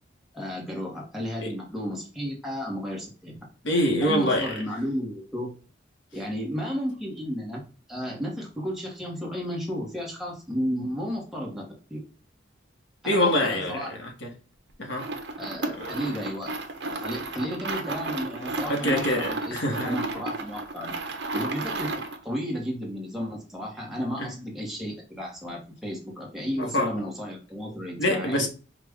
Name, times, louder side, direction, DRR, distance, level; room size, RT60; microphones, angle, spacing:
voice 1, 0.3-3.3 4.0-5.5 6.1-7.6 7.9-11.6 11.9-12.0 13.0-14.1 15.4-16.6 17.0-20.9 21.3-28.4, equal, ahead, 1.1 m, -33 dB
voice 2, 3.6-4.6 13.0-14.3 14.8-15.1 15.6-16.0 18.7-20.0 24.2-24.3 26.6-27.0 28.0-28.5, left 1 dB, 70° left, 1.1 m, -25 dB
sound 1, 14.9-22.2, right 2 dB, 60° right, 0.7 m, -33 dB
5.0 x 2.4 x 3.5 m
head